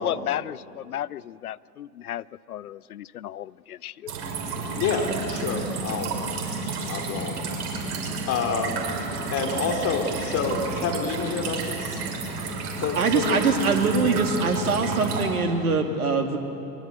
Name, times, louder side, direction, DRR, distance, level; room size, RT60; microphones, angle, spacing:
voice 1, 0.0-4.1, left 11 dB, 70° left, 21 dB, 0.6 m, -33 dB
sound 1, 4.1-15.2, right 4 dB, 45° right, 6.2 m, -31 dB
voice 2, 4.7-6.1 6.8-7.4 7.8-7.9 8.3-8.8 9.3-12.1 12.8-13.4, left 5 dB, 30° left, 4 dB, 3.4 m, -28 dB
voice 3, 13.0-16.4, right 4 dB, 70° right, 4 dB, 2.5 m, -23 dB
24.5 x 22.5 x 8.0 m, 2.7 s
figure-of-eight pair, 90°, 45 cm